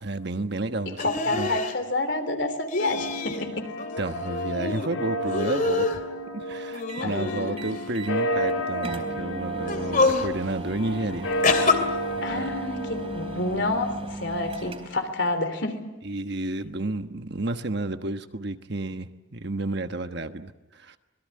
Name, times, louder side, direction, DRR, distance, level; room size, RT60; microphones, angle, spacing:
voice 1, 0.0-1.5 4.0-6.0 6.3-11.3 12.3-12.5 16.0-21.0, right 2 dB, 55° right, 8 dB, 1.3 m, -31 dB
voice 2, 1.0-3.7 7.0-7.7 12.2-15.8, left 2 dB, 60° left, 8 dB, 3.5 m, -29 dB
sound 1, 1.0-1.7 2.7-3.4 3.8-4.9 5.3-6.0 6.7-7.8 8.6-8.9 9.6-10.3 11.4-11.8, left 3 dB, 40° left, 2.7 m, -26 dB
sound 2, 2.8-13.8, equal, 90° left, 3.6 m, -32 dB
sound 3, 6.9-7.1 7.6-8.2 8.5-8.6 8.8-15.1, right 2 dB, 30° right, 3.9 m, -39 dB
26.0 x 22.0 x 8.6 m, 0.99 s
head